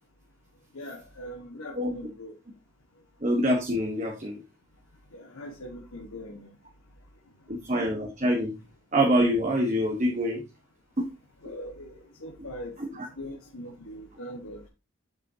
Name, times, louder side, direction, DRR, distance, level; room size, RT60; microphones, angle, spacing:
voice 1, 0.7-2.3 5.1-6.5 11.4-14.6, equal, 85° left, -1 dB, 1.5 m, -41 dB
voice 2, 3.2-4.4 7.5-8.5 8.9-10.4 11.0-11.1 12.8-13.1, equal, 35° right, 1 dB, 1.3 m, -25 dB
8.1 x 6.5 x 2.8 m, 0.27 s
head